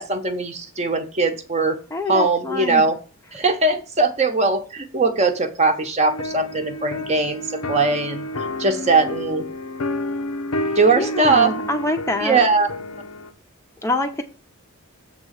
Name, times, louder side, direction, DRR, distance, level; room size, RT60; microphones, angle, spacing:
voice 1, 0.0-1.8 2.1-3.0 3.3-8.2 8.6-9.4 10.8-11.5 12.2-12.7, right 3 dB, 30° right, 7 dB, 0.8 m, -20 dB
voice 2, 1.9-2.8 10.9-12.4 13.8-14.2, left 1 dB, 10° left, 5 dB, 0.6 m, -25 dB
sound 1, 6.1-13.3, left 1 dB, 80° left, 0.8 m, -29 dB
7.4 x 3.6 x 6.4 m, 0.36 s
head